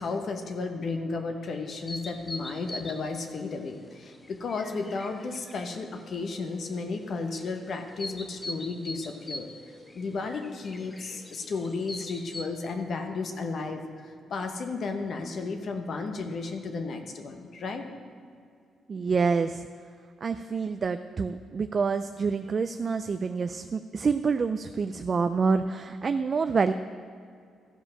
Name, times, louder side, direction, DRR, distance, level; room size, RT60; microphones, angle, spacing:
voice 1, 0.0-17.9, left 4 dB, 50° left, 5 dB, 0.9 m, -33 dB
sound 1, 1.7-12.4, left 1 dB, 15° left, 0.6 m, -44 dB
voice 2, 18.9-19.7 20.2-26.7, right 5 dB, 35° right, 9 dB, 0.3 m, -27 dB
14.0 x 5.1 x 6.3 m, 2.3 s
cardioid pair, 125°, 0 cm